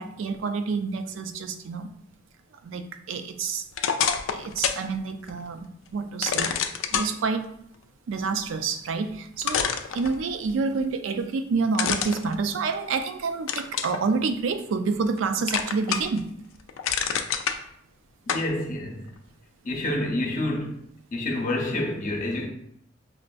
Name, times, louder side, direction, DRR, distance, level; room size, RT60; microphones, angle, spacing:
voice 1, 0.0-1.9 2.6-3.6 4.3-6.6 6.9-7.5 8.1-9.7 9.9-16.3, right 4 dB, 75° right, 0.4 m, -28 dB
sound 1, 3.7-4.9 5.3-5.4 6.2-7.1 8.9-9.0 9.4-10.5 11.7-13.0 13.5-14.0 14.5-15.2 15.5-16.2 16.6-17.6 18.3-18.5, left 7 dB, 85° left, 0.3 m, -27 dB
voice 2, 18.3-19.0 19.6-20.8 21.1-22.5, left 1 dB, 40° left, 0.6 m, -28 dB
4.9 x 2.5 x 2.2 m
head